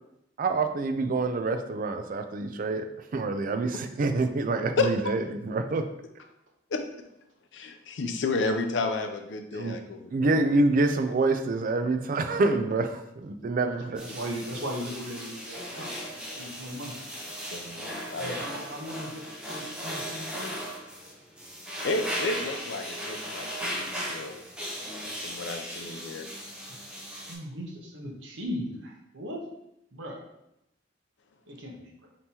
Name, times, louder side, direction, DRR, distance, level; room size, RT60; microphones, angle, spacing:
voice 1, 0.4-5.9 9.5-9.8 10.1-14.0, right 3 dB, 45° right, 7 dB, 0.4 m, -27 dB
voice 2, 7.5-10.5 17.5-18.3 21.8-24.4 25.2-26.3, left 3 dB, 70° left, 6 dB, 0.5 m, -31 dB
sound 1, 14.0-27.3, equal, 5° right, 0.7 m, -37 dB
voice 3, 14.0-17.0 18.2-20.5 27.3-29.4 29.9-30.2 31.5-31.9, equal, 80° right, 0 dB, 0.9 m, -38 dB
5.3 x 2.9 x 2.8 m, 0.81 s
head